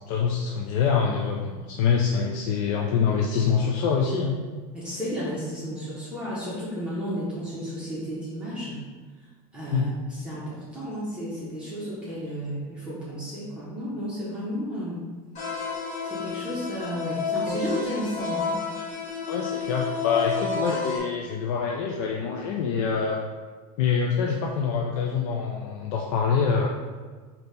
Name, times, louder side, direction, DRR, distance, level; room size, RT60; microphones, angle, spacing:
voice 1, 0.1-4.4 9.7-9.9 19.3-23.2 23.8-26.7, left 6 dB, 60° left, 0 dB, 0.4 m, -25 dB
voice 2, 4.7-8.8 9.5-15.0 16.1-18.6, equal, 5° right, -10 dB, 0.9 m, -33 dB
sound 1, 15.3-21.0, left 5 dB, 40° left, 1.2 m, -30 dB
4.1 x 2.8 x 3.3 m, 1.4 s
supercardioid pair, 140°, 19 cm